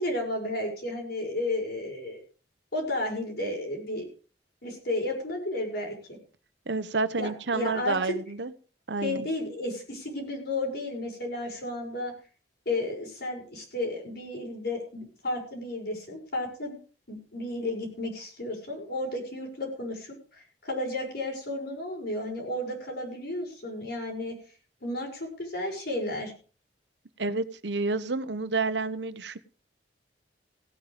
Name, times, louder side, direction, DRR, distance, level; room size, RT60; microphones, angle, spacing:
voice 1, 0.0-2.2 2.7-4.0 4.6-6.2 7.2-8.1 9.0-12.1 12.7-16.8 17.1-24.4 24.8-26.3, left 1 dB, 65° left, 1 dB, 6.1 m, -33 dB
voice 2, 6.7-8.5 8.9-9.3 27.2-29.4, right 3 dB, 75° right, 13 dB, 1.0 m, -29 dB
16.5 x 9.1 x 5.1 m, 0.38 s
head